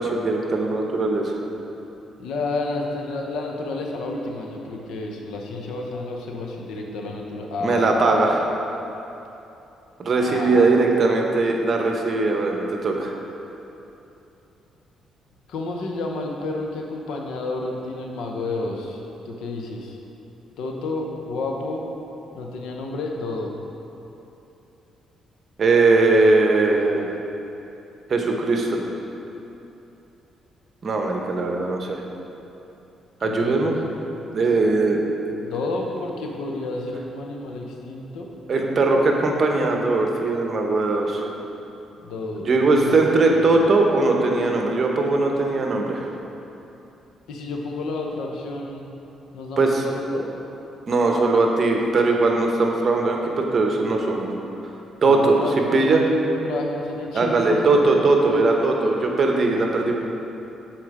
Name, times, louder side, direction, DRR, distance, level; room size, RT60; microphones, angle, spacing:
voice 1, 0.0-1.3 7.6-8.4 10.0-13.1 25.6-27.1 28.1-28.8 30.8-32.0 33.2-33.7 34.3-35.0 38.5-41.3 42.4-46.0 49.6-49.8 50.9-54.3 55.0-55.4 55.7-56.0 57.1-59.9, right 3 dB, 45° right, 1 dB, 0.9 m, -20 dB
voice 2, 2.2-8.4 10.1-10.7 15.5-20.0 20.6-21.8 22.3-23.6 33.2-33.7 35.4-38.4 42.0-43.0 43.3-43.6 47.3-48.8 49.3-50.3 55.0-57.7 59.4-59.9, left 2 dB, 80° left, 1 dB, 0.8 m, -30 dB
7.5 x 4.4 x 4.9 m, 3.0 s
cardioid pair, 90°, 0 cm